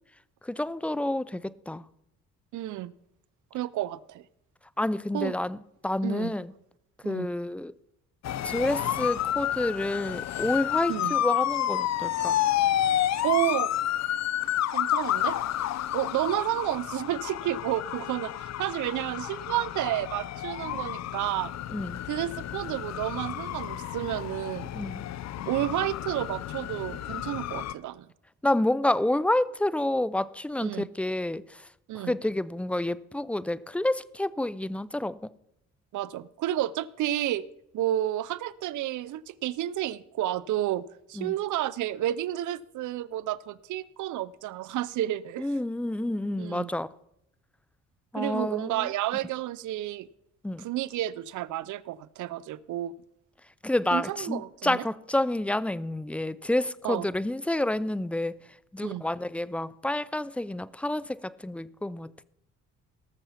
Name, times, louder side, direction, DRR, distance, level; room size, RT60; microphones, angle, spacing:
voice 1, 0.4-1.8 4.8-5.6 5.8-6.5 7.0-7.7 8.4-12.4 21.7-22.0 24.7-25.0 28.4-31.7 31.9-35.2 41.2-41.3 45.4-46.9 48.1-48.9 50.4-50.7 53.6-58.4 58.7-62.1, left 1 dB, 5° left, 0.4 m, -29 dB
voice 2, 2.5-2.9 3.5-4.2 5.1-5.3 6.0-6.3 7.0-7.3 10.9-11.1 13.2-13.7 14.7-15.4 15.9-21.5 22.1-24.7 25.5-28.1 30.6-30.9 31.9-32.1 35.9-37.4 37.7-45.5 46.4-46.7 48.1-50.1 50.6-52.9 53.9-54.8 56.8-57.1 58.8-59.0, right 13 dB, 75° right, 0.6 m, -31 dB
sound 1, 8.2-27.7, left 12 dB, 60° left, 0.6 m, -30 dB
18.0 x 6.8 x 5.7 m
cardioid pair, 90°, 30 cm